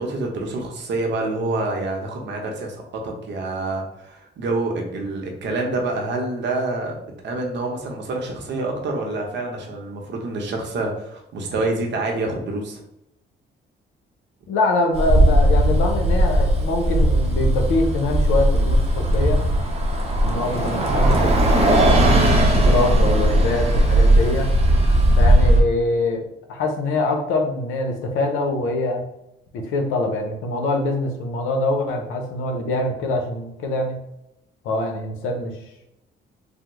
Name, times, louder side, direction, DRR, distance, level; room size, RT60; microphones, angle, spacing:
voice 1, 0.0-12.8, right 2 dB, 65° right, 1 dB, 0.8 m, -27 dB
voice 2, 14.5-19.4 20.2-24.5 25.2-29.1 29.5-34.0 34.6-35.5, left 2 dB, 90° left, 3 dB, 0.6 m, -24 dB
Bus, 14.9-25.6, right 1 dB, 30° right, 0.7 m, -17 dB
3.4 x 2.0 x 3.0 m, 0.85 s
cardioid pair, 90°, 20 cm